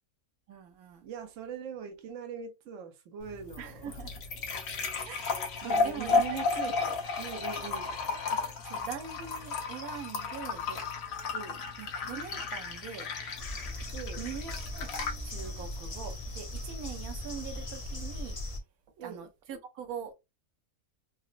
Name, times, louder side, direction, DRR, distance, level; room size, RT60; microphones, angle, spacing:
voice 1, 0.5-1.0 3.6-4.1 5.1-6.2 6.5-6.6 8.3-10.8 11.8-13.1 14.2-14.9 15.2-18.4 19.0-20.1, right 7 dB, 90° right, 1.1 m, -43 dB
voice 2, 1.0-4.0 5.6-7.9 11.3-11.6 13.9-14.3 19.0-19.3, right 7 dB, 65° right, 1.0 m, -41 dB
sound 1, 3.2-18.2, left 4 dB, 70° left, 1.2 m, -34 dB
sound 2, 13.4-18.6, left 1 dB, 35° left, 0.6 m, -39 dB
3.9 x 2.0 x 2.4 m
omnidirectional pair, 1.5 m